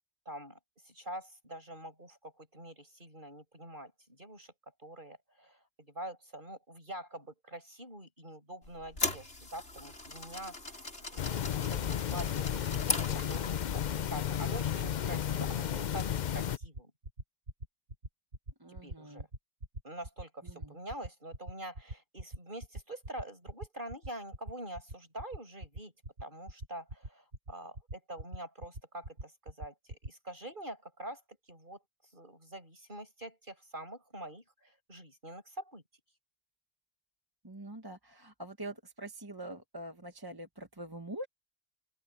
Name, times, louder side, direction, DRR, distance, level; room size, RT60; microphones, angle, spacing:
voice 1, 0.3-0.6 0.8-4.5 4.8-10.8 11.1-16.9 18.8-19.3 19.8-25.9 26.2-31.2 31.5-31.8 32.1-35.8, right 1 dB, 45° right, 7.7 m, -45 dB
sound 1, 8.6-13.8, left 2 dB, 85° left, 5.9 m, -38 dB
sound 2, 11.2-16.6, left 9 dB, 50° left, 0.6 m, -33 dB
sound 3, 16.6-30.1, right 2 dB, 80° right, 3.6 m, -42 dB
voice 2, 18.6-19.2 20.4-20.7 37.4-41.3, right 1 dB, 20° right, 1.5 m, -44 dB
open air
omnidirectional pair, 1.1 m